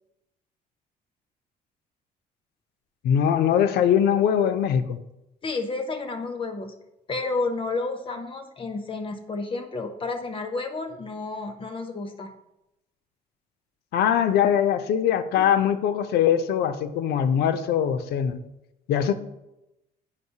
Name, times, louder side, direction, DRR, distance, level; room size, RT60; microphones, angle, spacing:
voice 1, 3.0-5.0 13.9-18.4 18.9-19.1, left 9 dB, 75° left, 0.5 m, -22 dB
voice 2, 5.4-6.7 7.1-12.3 15.4-15.5, left 3 dB, 30° left, 0.6 m, -31 dB
8.0 x 5.2 x 2.8 m
cardioid pair, 110°, 17 cm